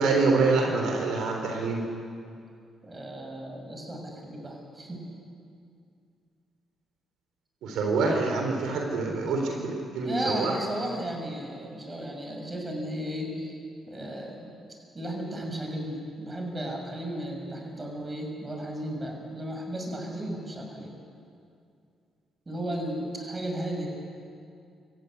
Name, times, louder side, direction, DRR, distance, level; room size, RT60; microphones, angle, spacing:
voice 1, 0.0-1.8 7.6-10.6, right 3 dB, 80° right, 2 dB, 3.6 m, -26 dB
voice 2, 2.8-5.0 9.2-9.7 10.0-13.5 13.9-20.9 22.5-23.9, right 1 dB, 25° right, 2 dB, 6.3 m, -35 dB
26.0 x 14.5 x 9.6 m, 2.4 s
cardioid pair, 90°, 0 cm